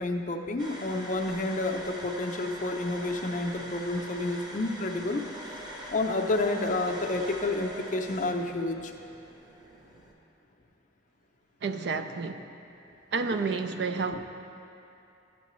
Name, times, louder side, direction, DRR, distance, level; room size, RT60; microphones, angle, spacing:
voice 1, 0.0-5.2 5.5-5.6 5.9-8.9 14.1-14.2, left 2 dB, 40° left, 3 dB, 0.5 m, -30 dB
sound 1, 0.6-10.1, equal, 20° right, 0.8 m, -43 dB
voice 2, 11.6-12.5 13.1-14.2, right 4 dB, 60° right, 8 dB, 0.4 m, -30 dB
12.5 x 7.4 x 3.1 m, 2.8 s
head